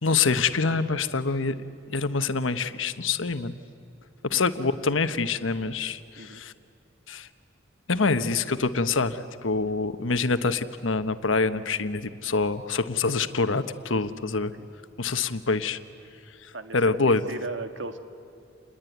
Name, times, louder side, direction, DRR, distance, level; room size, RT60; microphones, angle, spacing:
voice 1, 0.0-1.6 1.9-3.5 4.2-6.5 7.1-7.3 7.9-14.5 15.0-15.8 16.4-17.2, left 4 dB, 85° left, 10 dB, 1.2 m, -26 dB
voice 2, 16.5-18.0, right 3 dB, 70° right, 7 dB, 1.8 m, -37 dB
29.0 x 21.5 x 9.4 m, 2.7 s
head